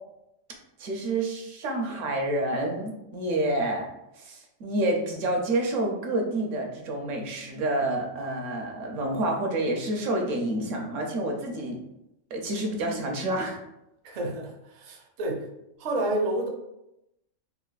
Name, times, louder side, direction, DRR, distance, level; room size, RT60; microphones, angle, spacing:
voice 1, 0.8-3.9 4.2-11.8 12.3-13.6, right 1 dB, 75° right, 1 dB, 1.0 m, -28 dB
voice 2, 14.0-15.4 15.8-16.5, right 1 dB, 55° right, 0 dB, 0.4 m, -29 dB
3.9 x 2.4 x 2.2 m, 0.87 s
omnidirectional pair, 1.4 m